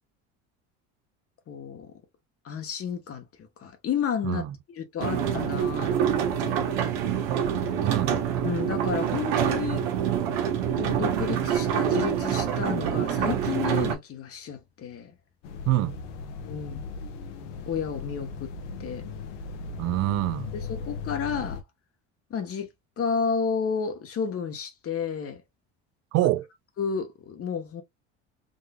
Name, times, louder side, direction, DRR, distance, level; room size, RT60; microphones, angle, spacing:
voice 1, 1.5-1.9 2.4-5.9 6.4-6.9 8.4-9.9 10.8-15.1 16.4-16.8 17.7-18.5 18.8-19.0 20.5-21.6 22.3-22.7 23.0-25.4 26.1-26.3 26.8-27.8, left 6 dB, 40° left, 1.1 m, -31 dB
voice 2, 4.2-4.6 7.8-8.1 15.7-16.0 19.8-20.5 26.1-26.5, right 16 dB, 45° right, 0.5 m, -25 dB
sound 1, 5.0-13.9, right 8 dB, 75° right, 1.3 m, -26 dB
sound 2, 15.4-21.6, left 4 dB, 80° left, 1.0 m, -37 dB
3.8 x 3.1 x 2.3 m
supercardioid pair, 85°, 35 cm